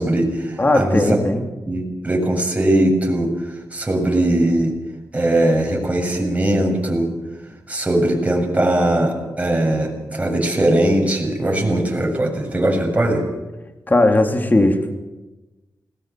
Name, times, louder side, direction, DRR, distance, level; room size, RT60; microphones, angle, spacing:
voice 1, 0.0-1.2 1.7-3.3 3.7-4.7 5.1-7.1 7.7-13.2, right 1 dB, 20° right, 1 dB, 7.4 m, -20 dB
voice 2, 0.6-1.4 13.9-14.8, left 2 dB, 25° left, 4 dB, 3.1 m, -17 dB
20.0 x 20.0 x 7.6 m, 1.1 s
cardioid pair, 65°, 7 cm